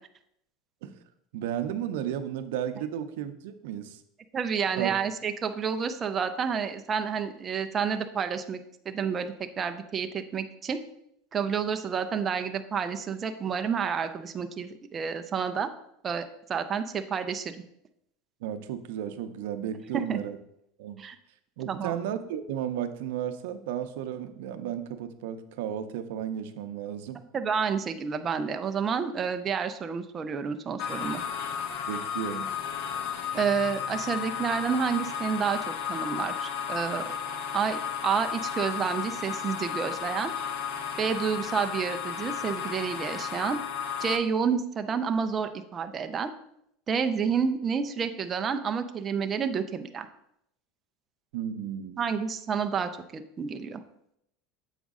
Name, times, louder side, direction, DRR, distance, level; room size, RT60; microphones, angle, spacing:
voice 1, 1.3-4.0 4.8-4.9 18.4-20.4 20.8-21.0 21.6-27.2 31.9-32.5 51.3-52.0, right 9 dB, 65° right, 9 dB, 0.6 m, -34 dB
voice 2, 4.3-8.6 8.9-10.8 11.3-15.7 16.0-17.6 19.9-20.2 21.0-21.2 21.7-22.0 27.3-31.2 33.3-37.1 37.5-40.3 41.0-43.6 44.0-46.3 46.9-50.1 52.0-53.8, right 6 dB, 20° right, 7 dB, 0.3 m, -29 dB
sound 1, 30.8-44.2, left 7 dB, 45° left, 0.5 m, -34 dB
7.2 x 5.0 x 3.6 m, 0.75 s
supercardioid pair, 180°, 0 cm